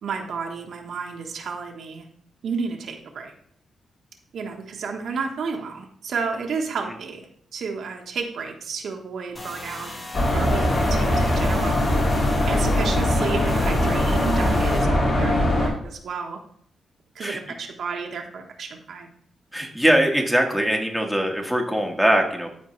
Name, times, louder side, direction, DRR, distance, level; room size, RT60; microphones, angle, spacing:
voice 1, 0.0-2.0 2.4-3.3 4.3-7.2 7.5-9.9 10.3-11.9 12.5-16.4 17.1-19.1, right 5 dB, 70° right, 2 dB, 1.2 m, -31 dB
sound 1, 9.3-14.8, left 1 dB, 30° left, 2.1 m, -37 dB
sound 2, 10.1-15.7, left 1 dB, 55° left, 3.9 m, -21 dB
voice 2, 19.5-22.5, right 1 dB, 5° left, 1 dB, 1.6 m, -21 dB
13.5 x 4.7 x 3.2 m, 0.65 s
cardioid pair, 95°, 0 cm